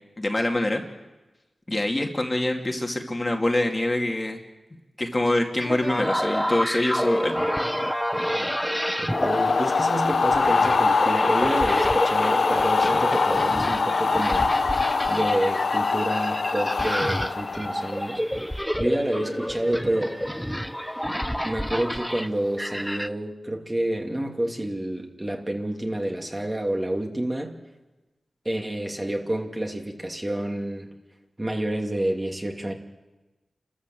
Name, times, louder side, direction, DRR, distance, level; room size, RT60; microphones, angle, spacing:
voice 1, 0.2-0.8 1.7-4.4 5.0-7.4, left 1 dB, 30° left, 2 dB, 2.5 m, -25 dB
sound 1, 5.6-23.1, equal, ahead, 0.8 m, -29 dB
voice 2, 9.0-14.5 15.1-18.2 18.8-20.2 21.4-27.6 28.4-30.9 31.4-32.7, right 1 dB, 25° right, 2 dB, 2.7 m, -29 dB
sound 2, 9.1-18.2, left 4 dB, 80° left, 1.1 m, -23 dB
28.5 x 13.5 x 7.8 m, 1.1 s
cardioid pair, 60°, 0 cm